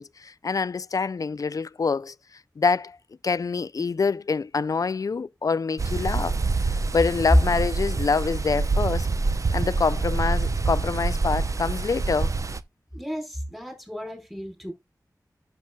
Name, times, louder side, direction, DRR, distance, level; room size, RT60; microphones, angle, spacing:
voice 1, 0.0-2.1 2.6-3.0 3.2-6.4 6.7-9.1 9.5-12.3, left 5 dB, 55° left, 0.4 m, -26 dB
sound 1, 5.8-12.6, right 3 dB, 50° right, 0.6 m, -26 dB
voice 2, 12.9-14.7, equal, 5° right, 4.4 m, -35 dB
11.5 x 6.9 x 2.3 m
wide cardioid pair, 55°, 7 cm